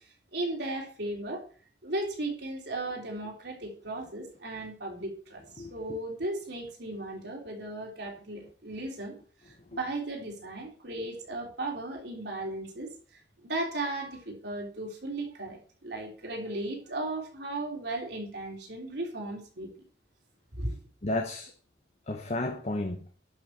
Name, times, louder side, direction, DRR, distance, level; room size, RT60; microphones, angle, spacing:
voice 1, 0.3-1.4 1.8-9.2 9.5-12.9 13.4-19.7 20.5-20.8, right 2 dB, 65° right, 3.5 m, -36 dB
voice 2, 5.6-6.0 9.7-9.8 21.0-21.5 22.1-23.1, left 2 dB, 40° left, 0.9 m, -33 dB
11.5 x 6.3 x 4.6 m
head